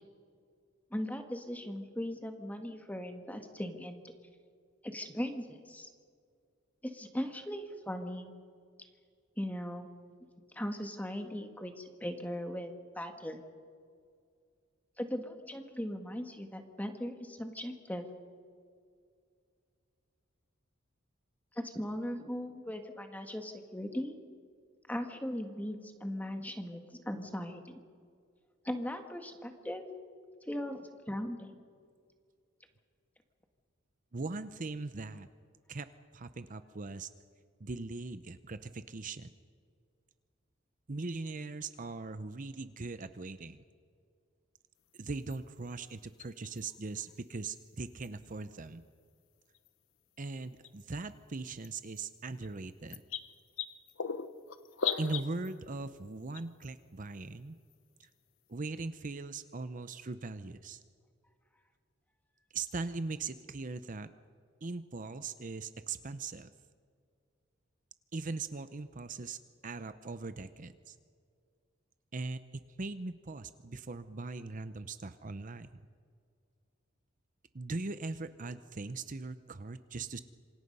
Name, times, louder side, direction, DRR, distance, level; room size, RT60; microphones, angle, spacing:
voice 1, 0.9-4.0 4.8-5.9 6.8-8.3 9.4-9.9 10.5-13.4 15.0-18.1 21.6-24.2 24.9-27.8 28.7-29.9 30.5-31.6, equal, 10° left, 5 dB, 1.7 m, -38 dB
voice 2, 34.1-35.3 35.7-35.9 36.1-37.1 37.6-39.3 40.9-43.6 44.9-48.8 50.2-53.0 55.0-57.6 58.0-58.1 58.5-60.8 62.5-64.1 64.6-66.5 68.1-71.0 72.1-75.8 77.5-80.2, right 3 dB, 40° right, 11 dB, 0.7 m, -40 dB
sound 1, 45.3-45.4 46.2-46.6 48.0-48.1 49.5-49.7 50.6-50.8 51.6-51.7 52.0-52.1 52.4-52.5 52.9-55.6 56.3-56.7 57.7-57.8 58.0-58.1, left 7 dB, 75° left, 0.9 m, -36 dB
27.0 x 25.0 x 5.5 m, 2.2 s
head